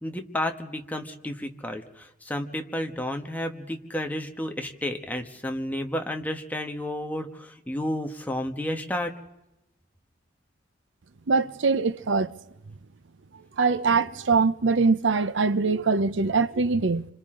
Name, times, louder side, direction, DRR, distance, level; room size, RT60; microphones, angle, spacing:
voice 1, 0.0-9.1, left 1 dB, 10° left, 1.4 m, -31 dB
voice 2, 11.3-12.3 13.6-17.1, right 4 dB, 80° right, 0.7 m, -23 dB
29.5 x 26.0 x 3.8 m
head